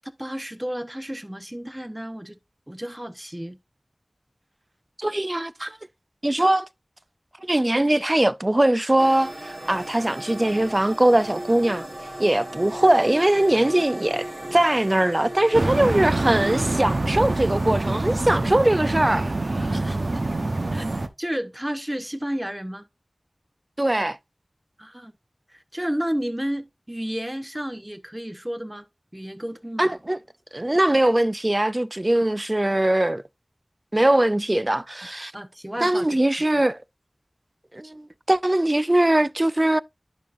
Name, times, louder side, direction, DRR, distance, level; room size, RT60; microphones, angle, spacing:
voice 1, 0.0-2.4 2.7-3.6 19.7-20.2 20.7-20.9 21.2-22.9 24.8-25.1 25.5-28.9 29.1-30.0 32.1-32.3 35.3-36.2, equal, 15° right, 1.0 m, -32 dB
voice 2, 5.0-5.8 6.2-6.7 7.5-11.8 12.2-19.7 23.8-24.2 29.8-30.2 30.5-33.2 33.9-35.3 35.8-36.8 37.7-39.8, right 1 dB, 35° right, 0.4 m, -21 dB
sound 1, 9.0-18.2, right 1 dB, 55° right, 2.2 m, -37 dB
sound 2, 15.5-21.1, right 2 dB, 70° right, 0.9 m, -25 dB
11.0 x 5.4 x 2.5 m
wide cardioid pair, 50°, 0 cm